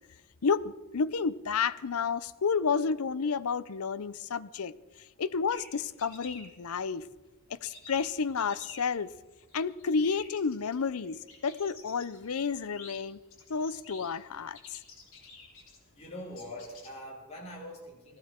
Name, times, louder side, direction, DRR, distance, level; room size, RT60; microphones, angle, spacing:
voice 1, 0.4-4.8 5.2-7.1 7.5-9.1 9.5-13.2 13.5-14.6, left 5 dB, 80° left, 0.6 m, -31 dB
sound 1, 5.5-16.9, left 4 dB, 60° left, 3.9 m, -51 dB
voice 2, 15.9-18.2, left 1 dB, 30° left, 3.2 m, -43 dB
19.5 x 15.0 x 4.4 m
head